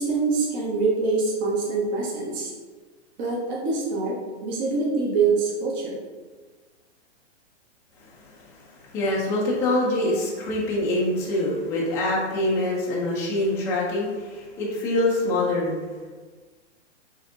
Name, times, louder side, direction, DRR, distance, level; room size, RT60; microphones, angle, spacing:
voice 1, 0.0-2.5 3.2-6.0, right 4 dB, 35° right, -4 dB, 0.9 m, -25 dB
voice 2, 8.0-15.8, left 1 dB, 10° left, -5 dB, 0.3 m, -25 dB
5.6 x 2.7 x 2.5 m, 1.4 s
hypercardioid pair, 140°, 36 cm